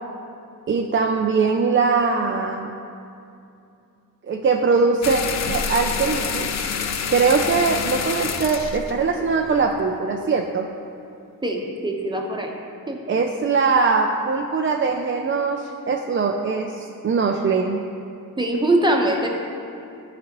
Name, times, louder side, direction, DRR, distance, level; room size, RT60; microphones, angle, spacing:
voice 1, 0.7-2.7 4.3-5.2 5.5-6.7 7.1-10.7 13.1-17.8, right 4 dB, 35° right, 2 dB, 0.4 m, -21 dB
sound 1, 5.0-9.9, left 6 dB, 50° left, 0.5 m, -27 dB
voice 2, 11.4-12.5 12.9-13.0 18.4-19.3, right 1 dB, 15° right, 1 dB, 1.0 m, -22 dB
11.0 x 4.2 x 3.0 m, 2.6 s
cardioid pair, 65°, 35 cm